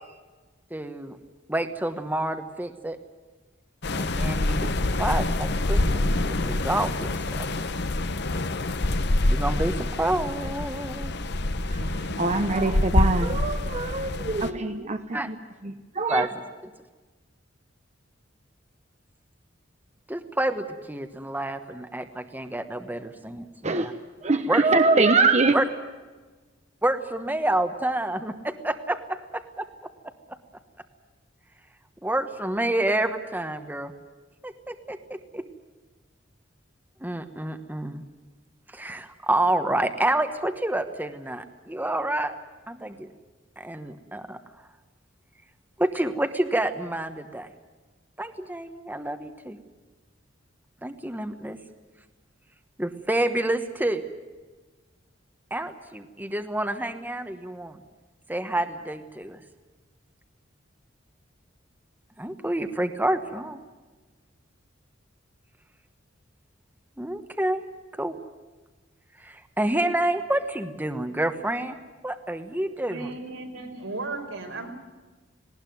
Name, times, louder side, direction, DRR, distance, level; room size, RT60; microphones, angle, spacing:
voice 1, 0.7-1.2 1.5-3.0 4.0-7.5 9.3-11.1 15.1-15.3 16.1-16.4 20.1-23.9 24.4-24.7 25.5-25.6 26.8-29.7 32.0-33.9 34.4-35.4 37.0-38.0 38.7-42.4 42.7-43.1 43.6-44.4 45.8-47.5 48.2-49.6 50.8-51.6 52.8-54.1 55.5-57.8 58.3-59.4 62.2-63.6 67.0-67.6 67.9-68.1 69.2-71.8 72.0-73.1, right 1 dB, 10° right, 7 dB, 1.2 m, -28 dB
sound 1, 3.8-14.5, left 2 dB, 60° left, 1.1 m, -26 dB
voice 2, 11.8-15.4 15.6-16.3 23.6-23.9 24.2-25.6, right 3 dB, 35° right, 7 dB, 1.0 m, -23 dB
voice 3, 72.9-74.7, right 3 dB, 90° right, 2 dB, 5.1 m, -35 dB
19.0 x 18.5 x 9.3 m, 1.3 s
head